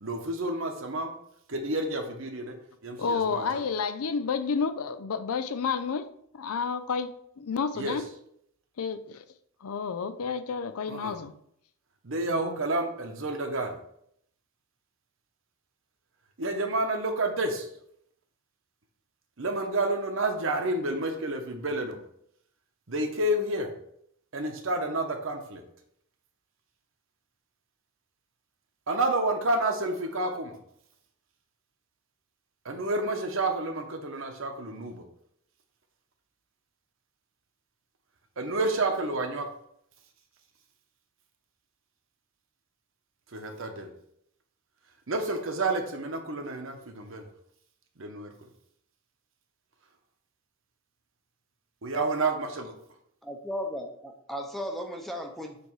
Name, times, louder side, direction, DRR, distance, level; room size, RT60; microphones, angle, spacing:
voice 1, 0.0-1.1 1.5-2.6 2.8-3.6 7.8-8.0 10.9-11.2 12.0-13.8 16.4-17.7 19.4-22.0 22.9-23.7 24.3-25.6 28.9-30.6 32.6-35.0 38.4-39.5 43.3-43.9 45.1-47.3 48.0-48.3 51.8-52.7, right 2 dB, 60° right, 4 dB, 1.0 m, -29 dB
voice 2, 3.0-6.1 6.3-8.0 8.8-9.3 9.6-11.3 12.3-12.6, left 5 dB, 80° left, 12 dB, 0.5 m, -30 dB
voice 3, 53.2-55.6, equal, ahead, 3 dB, 0.7 m, -35 dB
6.8 x 3.2 x 4.6 m, 0.70 s
head